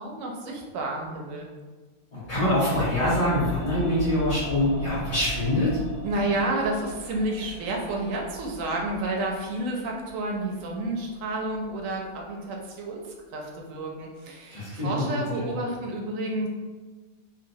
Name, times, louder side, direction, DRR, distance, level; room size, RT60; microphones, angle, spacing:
voice 1, 0.0-1.5 6.0-16.5, right 2 dB, 85° right, 0 dB, 1.0 m, -30 dB
voice 2, 2.1-5.8 14.5-15.1 15.3-15.5, left 1 dB, 60° left, -11 dB, 1.4 m, -24 dB
sound 1, 2.2-12.3 12.6-12.7, equal, 60° right, 0.8 m, -39 dB
2.9 x 2.7 x 2.7 m, 1.3 s
omnidirectional pair, 1.3 m